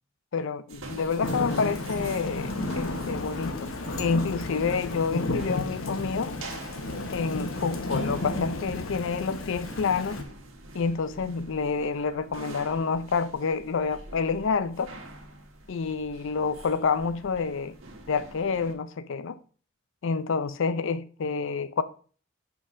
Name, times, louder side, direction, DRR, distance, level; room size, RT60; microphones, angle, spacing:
voice 1, 0.3-2.5 2.8-3.6 4.0-6.3 7.1-10.2 10.7-14.9 15.7-17.7 18.1-19.4 20.0-21.8, left 5 dB, 65° left, 0.5 m, -28 dB
sound 1, 0.7-18.7, right 2 dB, 75° right, 1.4 m, -46 dB
Thunder / Rain, 1.2-10.2, left 2 dB, 80° left, 1.0 m, -33 dB
5.7 x 4.0 x 6.2 m
head